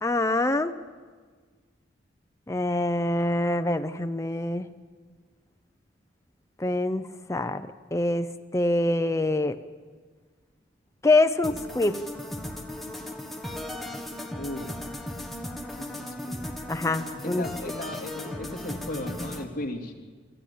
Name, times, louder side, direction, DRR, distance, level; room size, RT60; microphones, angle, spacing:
voice 1, 0.0-0.7 2.5-4.7 6.6-7.6 7.9-9.6 11.0-12.0 16.7-17.4, left 2 dB, 15° left, 8 dB, 0.6 m, -25 dB
sound 1, 11.4-19.4, left 1 dB, ahead, 1.6 m, -36 dB
voice 2, 14.3-14.7 15.8-16.4 17.2-20.0, left 1 dB, 50° left, 1 dB, 2.8 m, -36 dB
24.5 x 14.5 x 8.6 m, 1.5 s
head